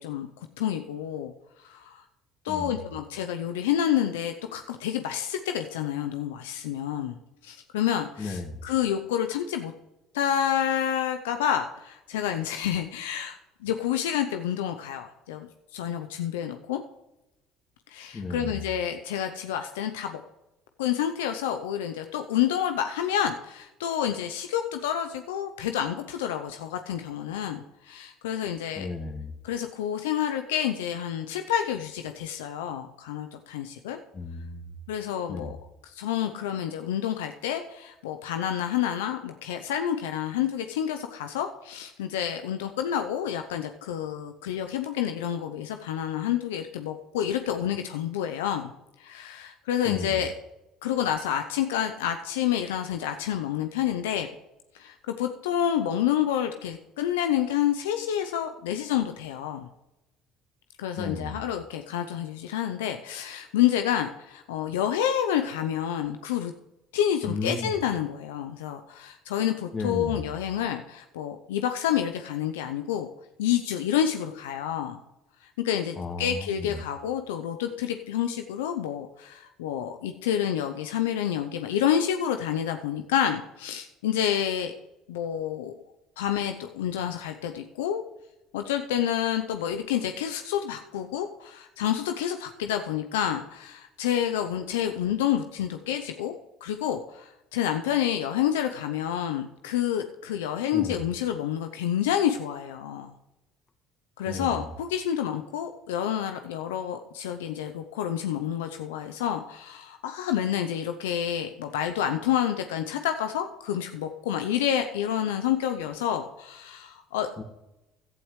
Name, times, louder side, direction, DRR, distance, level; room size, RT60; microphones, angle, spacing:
voice 1, 0.0-1.3 1.6-2.0 2.4-7.2 7.4-9.7 10.1-16.8 17.9-20.2 20.8-28.9 29.4-34.0 34.9-35.6 35.8-48.7 49.0-50.3 50.8-54.3 54.7-59.7 60.8-66.5 66.9-73.1 73.4-75.0 75.6-84.7 85.1-85.7 86.2-88.0 88.5-96.3 96.6-103.1 104.2-117.3, left 10 dB, 85° left, 7 dB, 0.6 m, -29 dB
voice 2, 8.2-8.6 18.1-18.6 28.8-29.3 34.1-34.6 35.3-35.5 49.9-50.2 61.0-61.4 67.2-67.7 69.7-70.3 76.0-76.8 100.7-101.0 104.3-104.7 117.4-117.5, left 3 dB, 35° left, 6 dB, 2.0 m, -34 dB
16.5 x 11.5 x 3.2 m, 0.95 s
hypercardioid pair, 70°, 0 cm